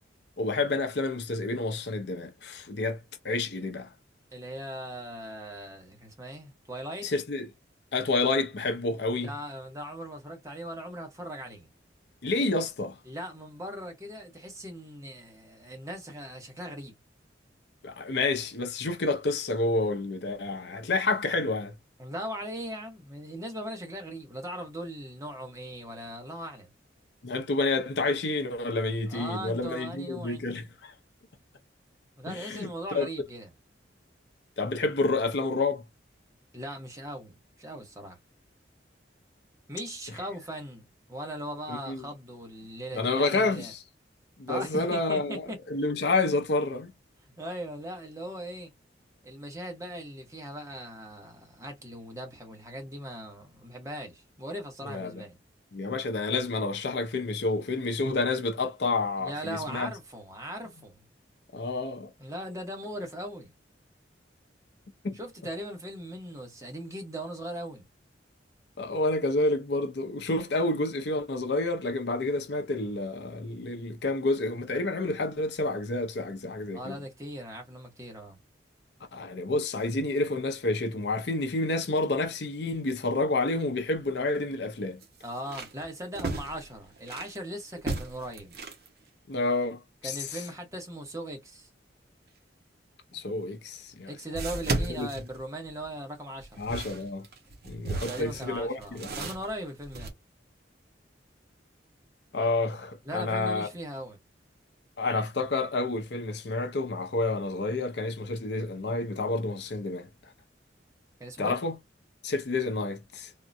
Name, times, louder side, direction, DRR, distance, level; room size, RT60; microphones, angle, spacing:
voice 1, 0.4-3.9 7.0-7.5 7.9-9.3 12.2-13.0 17.8-21.7 27.2-30.9 32.3-33.1 34.6-35.8 41.7-42.1 42.9-43.8 44.4-46.9 54.8-55.2 55.7-59.9 61.5-62.1 65.0-65.2 68.8-77.0 79.1-85.0 89.3-90.4 93.1-94.1 94.9-95.1 96.6-97.3 97.7-99.3 102.3-103.7 105.0-110.1 111.4-111.8 112.2-113.3, left 2 dB, 65° left, 0.6 m, -29 dB
voice 2, 4.3-7.1 9.1-11.7 13.0-16.9 22.0-26.7 29.1-30.5 32.2-33.5 36.5-38.2 39.7-43.7 44.5-45.6 47.4-48.7 49.2-55.3 59.2-61.0 62.2-63.5 65.1-67.8 76.7-78.4 85.2-88.6 90.0-91.7 94.1-96.7 97.9-100.1 103.0-104.2 111.2-111.6, equal, 15° right, 1.0 m, -39 dB
sound 1, 83.8-83.9 84.3-84.4 85.0-87.4 87.8-88.9 93.1-93.2 94.3-95.9 96.4-100.1, right 2 dB, 55° right, 0.9 m, -35 dB
3.6 x 2.1 x 2.5 m
head